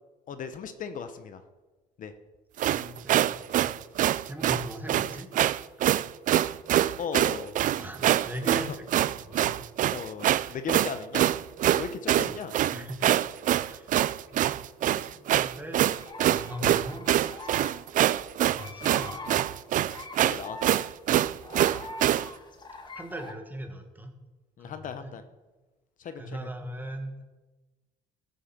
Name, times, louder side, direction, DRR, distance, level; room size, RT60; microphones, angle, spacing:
voice 1, 0.3-1.4 2.0-2.1 7.0-7.5 8.6-8.7 9.9-11.2 11.7-12.5 20.2-20.6 24.6-25.2 26.0-26.5, left 6 dB, 50° left, 10 dB, 1.0 m, -37 dB
sound 1, 2.6-22.3, right 12 dB, 50° right, 0.4 m, -25 dB
voice 2, 2.7-3.7 4.2-5.3 7.7-9.6 9.9-10.0 10.4-10.6 12.1-12.2 12.7-13.1 13.6-14.0 14.3-14.5 14.8-15.9 16.2-17.1 18.5-19.5 22.9-24.2 24.6-25.2 26.2-27.1, equal, 10° right, 4 dB, 1.8 m, -40 dB
sound 2, 15.8-23.3, left 3 dB, 25° left, 1.6 m, -44 dB
14.5 x 7.8 x 6.0 m, 1.2 s
cardioid pair, 110°, 17 cm